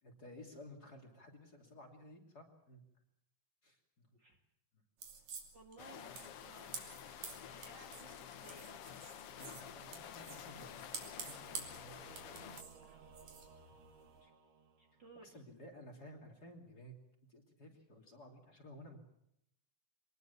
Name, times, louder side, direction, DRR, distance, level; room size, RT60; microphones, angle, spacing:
voice 1, 0.0-2.8 3.6-4.1 4.7-4.8 9.3-12.2 14.2-14.3 15.2-16.9 17.3-19.0, left 1 dB, 30° left, 2 dB, 3.2 m, -55 dB
sound 1, 5.0-14.2, right 6 dB, 80° right, 4.4 m, -51 dB
voice 2, 5.5-6.8 7.4-9.0 12.8-13.0 14.8-15.4, right 3 dB, 40° right, 2 dB, 2.5 m, -59 dB
sound 2, 5.8-12.6, left 9 dB, 60° left, 1.7 m, -50 dB
Singing / Musical instrument, 11.2-15.3, right 4 dB, 60° right, 2.7 m, -60 dB
24.0 x 20.0 x 7.0 m, 0.77 s
omnidirectional pair, 3.5 m